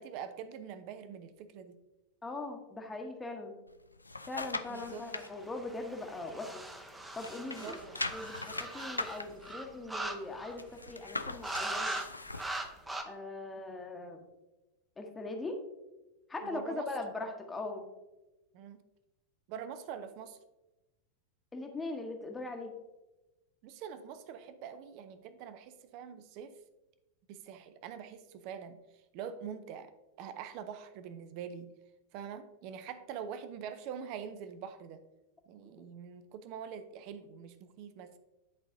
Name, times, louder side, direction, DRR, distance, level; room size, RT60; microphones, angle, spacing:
voice 1, 0.0-1.8 4.7-5.0 7.6-8.1 8.9-9.0 16.4-16.9 18.5-18.8 19.5-20.4 23.6-26.5 27.3-28.8 29.1-29.9 30.2-31.7 32.1-35.0 35.5-38.2, right 8 dB, 45° right, 11 dB, 0.5 m, -44 dB
voice 2, 2.2-3.5 4.3-6.6 7.1-7.8 8.1-12.0 13.0-14.2 15.0-15.6 16.3-17.9 21.5-22.7, left 2 dB, 10° left, 3 dB, 0.9 m, -40 dB
sound 1, 3.7-5.3 5.8-6.9 7.1-12.7 13.1-13.2, left 2 dB, 80° left, 0.3 m, -41 dB
sound 2, 5.1-10.7 11.4-12.1 12.3-13.0, right 2 dB, 10° right, 0.7 m, -40 dB
11.0 x 4.0 x 2.6 m, 1.0 s
figure-of-eight pair, 90°, 0 cm